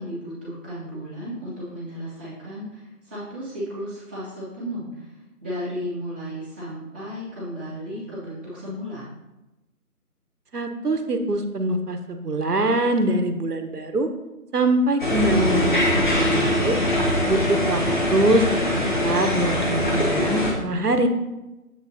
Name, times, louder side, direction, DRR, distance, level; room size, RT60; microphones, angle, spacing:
voice 1, 0.0-5.1 5.4-9.1, equal, 5° right, -15 dB, 1.4 m, -34 dB
voice 2, 10.5-14.1 14.5-16.8 17.3-18.6 19.0-21.1, right 1 dB, 80° right, 7 dB, 1.1 m, -23 dB
sound 1, 15.0-20.5, left 1 dB, 30° left, 1.5 m, -22 dB
8.4 x 7.8 x 2.8 m, 1.0 s
figure-of-eight pair, 170°, 46 cm